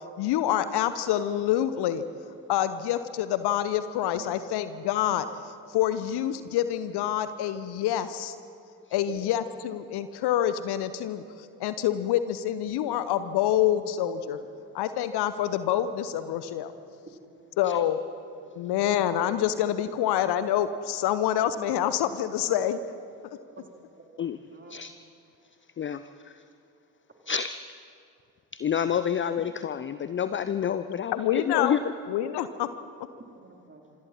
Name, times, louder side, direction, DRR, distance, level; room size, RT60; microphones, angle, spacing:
voice 1, 0.2-2.0 2.5-5.2 5.7-8.3 8.9-14.4 14.7-16.7 17.6-18.0 18.5-22.8 31.1-31.8 32.1-32.7, left 11 dB, 50° left, 12 dB, 1.0 m, -27 dB
voice 2, 9.0-9.4 13.7-13.8 17.0-17.8 23.6-23.7 24.0-24.1 24.5-24.8 33.3-33.9, right 4 dB, 25° right, 1 dB, 3.5 m, -49 dB
voice 3, 25.8-26.3 27.3-27.5 28.5-31.8, left 8 dB, 25° left, 13 dB, 0.6 m, -28 dB
26.5 x 25.5 x 4.3 m, 2.5 s
figure-of-eight pair, 50°, 50 cm